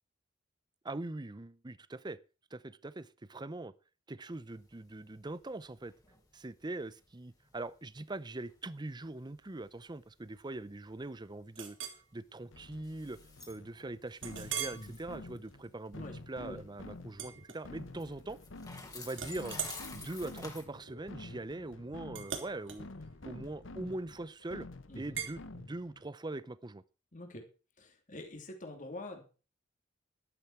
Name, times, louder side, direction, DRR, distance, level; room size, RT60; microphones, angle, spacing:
voice 1, 0.8-2.2 2.5-3.7 4.1-5.9 6.3-13.2 13.5-18.4 18.9-19.6 19.9-22.9 23.2-24.7 25.0-26.8, right 2 dB, 20° right, 0.6 m, -42 dB
sound 1, 4.3-20.6, left 4 dB, 20° left, 3.3 m, -53 dB
Chink clink, 11.6-12.0 12.6-12.7 13.2-13.3 14.2-14.9 15.4-15.7 17.1-18.1 18.4-18.8 19.1-24.2 25.2-25.4, right 8 dB, 70° right, 3.2 m, -42 dB
sound 2, 12.5-26.0, left 2 dB, 85° left, 1.1 m, -50 dB
voice 2, 14.7-15.0 15.9-16.6 24.9-25.2 27.1-27.4 27.8-29.2, left 1 dB, 40° left, 3.0 m, -46 dB
12.0 x 12.0 x 4.5 m
head